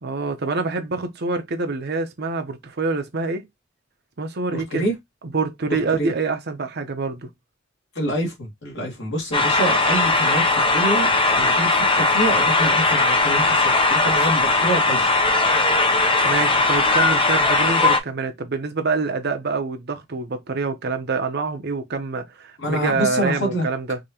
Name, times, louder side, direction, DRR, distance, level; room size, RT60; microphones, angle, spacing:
voice 1, 0.0-3.4 4.2-4.8 5.3-7.3 16.2-24.0, right 4 dB, 55° right, 0.8 m, -26 dB
voice 2, 4.5-4.9 6.0-6.1 7.9-15.1 22.6-23.7, equal, 65° left, 2.3 m, -26 dB
sound 1, 9.3-18.0, left 3 dB, 25° left, 0.6 m, -19 dB
5.0 x 2.9 x 2.9 m
head